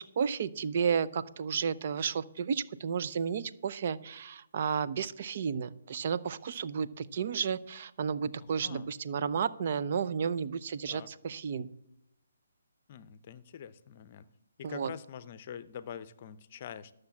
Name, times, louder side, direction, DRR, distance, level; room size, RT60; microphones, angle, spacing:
voice 1, 0.0-11.7 14.6-14.9, right 6 dB, 45° right, 13 dB, 0.6 m, -32 dB
voice 2, 8.4-8.9 10.9-11.1 12.9-14.3 14.6-16.9, left 8 dB, 40° left, 15 dB, 0.6 m, -45 dB
12.5 x 6.5 x 7.1 m, 0.86 s
hypercardioid pair, 150°, 0 cm